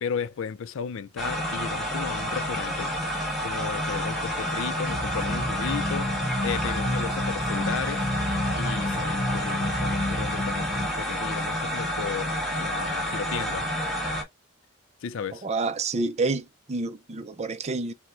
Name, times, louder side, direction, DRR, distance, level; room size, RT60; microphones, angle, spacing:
voice 1, 0.0-2.9 3.4-6.1 6.4-8.1 8.6-13.7 15.0-15.4, left 6 dB, 65° left, 0.4 m, -34 dB
sound 1, 1.2-14.2, equal, ahead, 1.2 m, -29 dB
sound 2, 4.9-10.9, left 1 dB, 40° left, 1.3 m, -30 dB
voice 2, 15.3-17.9, right 3 dB, 30° right, 0.5 m, -29 dB
5.9 x 2.1 x 3.0 m
head